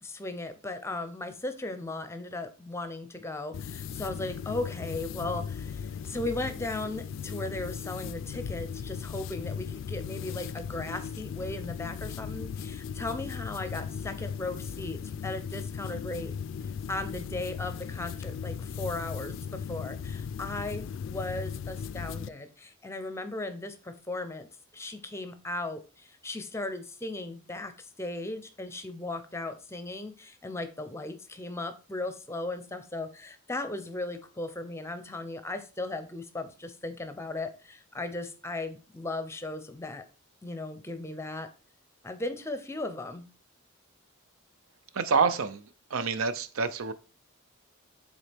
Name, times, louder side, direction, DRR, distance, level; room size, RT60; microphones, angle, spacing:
voice 1, 0.0-16.3 16.9-24.5 24.7-40.0 40.4-41.5 42.0-43.3, left 2 dB, 15° left, 0.6 m, -37 dB
sound 1, 3.5-22.3, left 6 dB, 65° left, 0.3 m, -37 dB
voice 2, 44.9-45.6 45.9-46.9, right 5 dB, 85° right, 0.6 m, -27 dB
7.1 x 3.9 x 3.4 m
head